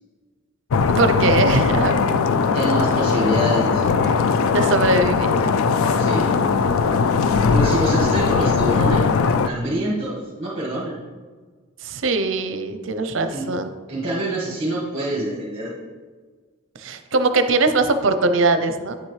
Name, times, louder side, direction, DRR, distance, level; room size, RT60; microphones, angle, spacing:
sound 1, 0.7-9.5, left 5 dB, 70° left, 0.3 m, -19 dB
voice 1, 0.9-2.0 4.5-5.4 11.8-13.7 16.8-18.9, right 3 dB, 60° right, 8 dB, 0.6 m, -20 dB
voice 2, 2.5-4.2 6.0-6.4 7.5-9.1 9.4-11.0 13.3-13.5 13.9-15.8, right 1 dB, 25° right, -6 dB, 1.5 m, -26 dB
9.2 x 7.2 x 3.3 m, 1.5 s
head